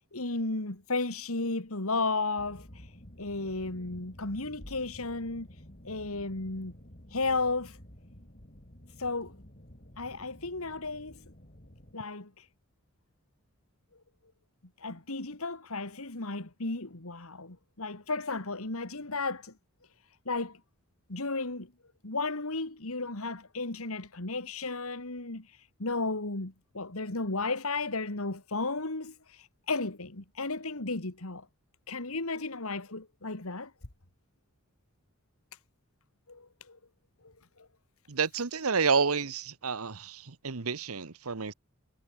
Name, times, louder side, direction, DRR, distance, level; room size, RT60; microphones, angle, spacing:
voice 1, 0.1-2.7 3.2-5.5 5.8-6.8 7.1-7.8 9.0-9.3 10.0-11.2 11.9-12.3 14.8-19.5 20.3-20.6 21.1-21.7 22.0-25.5 25.8-31.5 31.9-33.7 36.3-36.8 37.2-37.3, left 3 dB, 80° left, 2.5 m, -34 dB
sound 1, 2.4-11.9, equal, 40° left, 3.6 m, -51 dB
voice 2, 38.1-41.5, right 5 dB, 85° right, 1.2 m, -29 dB
head